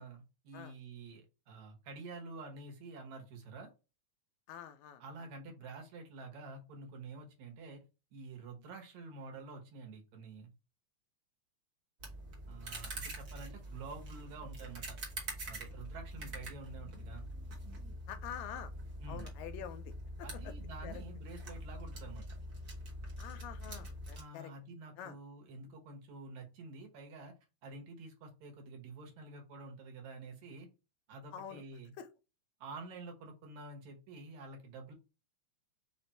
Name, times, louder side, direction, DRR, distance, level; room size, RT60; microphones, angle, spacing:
voice 1, 0.0-3.7 5.0-7.8 8.1-10.5 12.5-15.0 15.5-17.2 19.0-19.3 20.2-22.4 24.2-27.3 27.6-30.7 31.1-31.9 32.6-34.9, right 3 dB, 75° right, 2.5 m, -49 dB
voice 2, 4.5-5.0 18.1-18.7 19.1-20.3 20.8-21.0 23.2-24.5 25.0-25.2 31.3-31.6 32.0-32.1, left 9 dB, 80° left, 1.9 m, -46 dB
sound 1, 12.0-24.2, right 1 dB, 45° right, 1.3 m, -45 dB
5.0 x 2.5 x 4.2 m
omnidirectional pair, 3.3 m